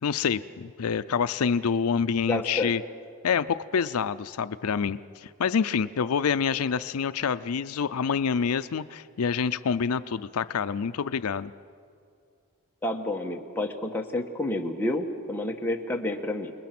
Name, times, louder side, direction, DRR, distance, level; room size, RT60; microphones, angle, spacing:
voice 1, 0.0-2.8 3.2-11.5, left 6 dB, 80° left, 13 dB, 0.5 m, -27 dB
voice 2, 2.3-2.7 12.8-16.5, left 1 dB, 10° left, 1 dB, 1.3 m, -29 dB
28.5 x 20.5 x 6.0 m, 2.3 s
head